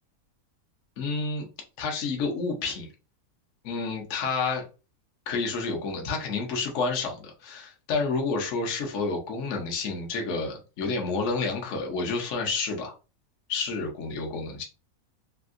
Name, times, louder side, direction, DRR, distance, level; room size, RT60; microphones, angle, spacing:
voice 1, 1.0-1.5 1.8-2.9 3.6-4.6 5.3-12.9 13.5-14.6, left 4 dB, 65° left, 1 dB, 1.0 m, -29 dB
3.4 x 2.6 x 2.4 m, 0.32 s
omnidirectional pair, 1.5 m